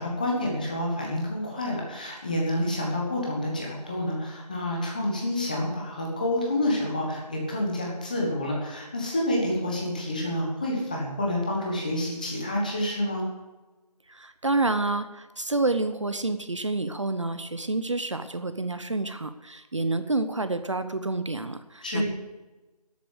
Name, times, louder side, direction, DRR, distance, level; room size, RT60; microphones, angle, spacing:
voice 1, 0.0-13.3 21.8-22.1, left 1 dB, 10° left, -2 dB, 1.4 m, -28 dB
voice 2, 14.1-22.1, right 2 dB, 50° right, 10 dB, 0.8 m, -28 dB
12.5 x 8.4 x 8.1 m, 1.2 s
figure-of-eight pair, 175°, 21 cm